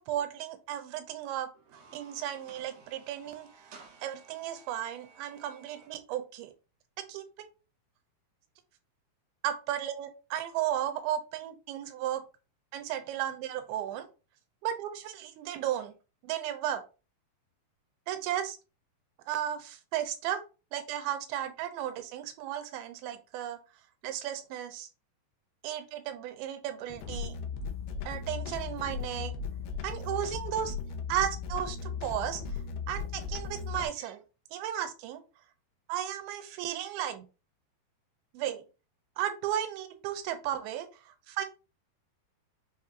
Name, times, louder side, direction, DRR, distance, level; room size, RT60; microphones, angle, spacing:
voice 1, 0.0-1.5 1.9-6.5 7.0-7.2 9.4-12.2 12.7-14.1 14.6-15.9 16.2-16.8 18.1-18.6 19.3-20.4 20.7-23.6 24.0-24.9 25.6-27.4 28.1-29.4 29.8-30.8 31.1-34.2 34.5-35.2 35.9-37.2 38.3-38.7 39.2-41.5, right 11 dB, 90° right, 9 dB, 2.5 m, -34 dB
sound 1, 1.6-5.9, right 4 dB, 70° right, 2.1 m, -56 dB
sound 2, 26.8-33.9, left 5 dB, 80° left, 2.2 m, -37 dB
6.0 x 2.8 x 2.4 m, 0.32 s
omnidirectional pair, 4.3 m